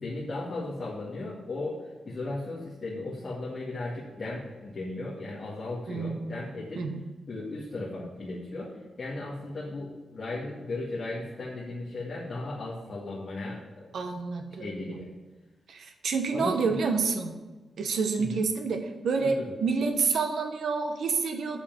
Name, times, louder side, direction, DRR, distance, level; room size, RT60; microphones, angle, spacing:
voice 1, 0.0-6.8 7.3-13.9 14.5-15.1 16.3-16.8 18.2-18.4 19.2-19.5, left 2 dB, 35° left, -7 dB, 2.1 m, -36 dB
voice 2, 5.9-6.4 6.7-7.0 13.9-15.0 15.7-17.3 17.8-21.6, right 4 dB, 70° right, 5 dB, 1.1 m, -28 dB
8.3 x 5.7 x 7.3 m, 1.2 s
wide cardioid pair, 165°, 0 cm